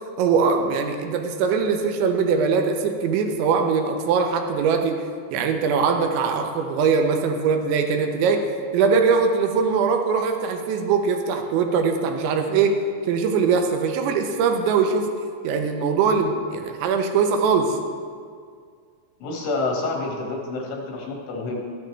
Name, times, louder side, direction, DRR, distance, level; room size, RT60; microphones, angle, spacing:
voice 1, 0.2-5.0 5.3-8.4 8.7-12.8 13.1-15.1 15.4-17.8, right 5 dB, 80° right, 4 dB, 3.0 m, -21 dB
voice 2, 19.2-21.6, left 3 dB, 80° left, -1 dB, 3.9 m, -28 dB
12.5 x 10.5 x 3.3 m, 2.1 s
omnidirectional pair, 5.4 m